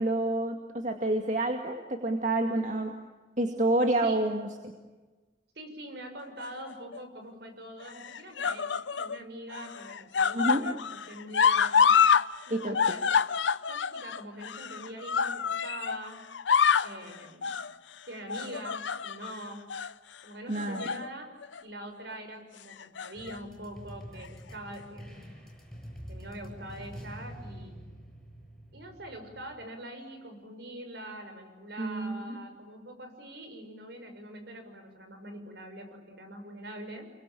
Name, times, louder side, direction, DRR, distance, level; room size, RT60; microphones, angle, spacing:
voice 1, 0.0-2.9 3.4-4.7 10.3-10.6 12.5-12.8 20.5-20.9 31.8-32.4, right 2 dB, 40° right, 4 dB, 2.0 m, -28 dB
voice 2, 5.5-11.9 12.5-13.0 13.7-16.2 16.8-17.5 18.1-19.7 20.2-21.3 21.6-25.3 26.1-27.9 28.7-37.1, right 1 dB, 60° right, 7 dB, 6.5 m, -44 dB
sound 1, 6.4-7.0 7.9-9.2 9.5-12.3 12.5-16.0 16.3-17.0 17.4-17.7 18.3-19.3 19.7-19.9 20.6-21.1 21.4-21.6 22.7-23.4 24.2-24.3, left 7 dB, 75° left, 0.8 m, -27 dB
sound 2, 23.1-29.7, equal, ahead, 7.0 m, -46 dB
29.5 x 23.5 x 8.5 m, 1.3 s
head